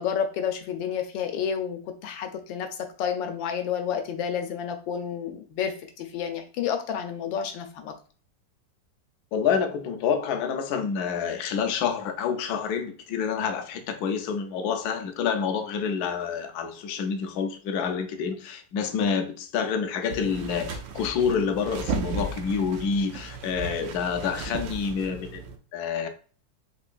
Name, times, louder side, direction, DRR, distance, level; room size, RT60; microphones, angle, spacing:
voice 1, 0.0-7.9, left 8 dB, 85° left, 6 dB, 1.3 m, -30 dB
voice 2, 9.3-26.1, left 6 dB, 70° left, 6 dB, 1.0 m, -28 dB
sound 1, 20.1-25.6, right 4 dB, 70° right, 0.9 m, -35 dB
3.7 x 3.0 x 2.4 m, 0.39 s
omnidirectional pair, 2.0 m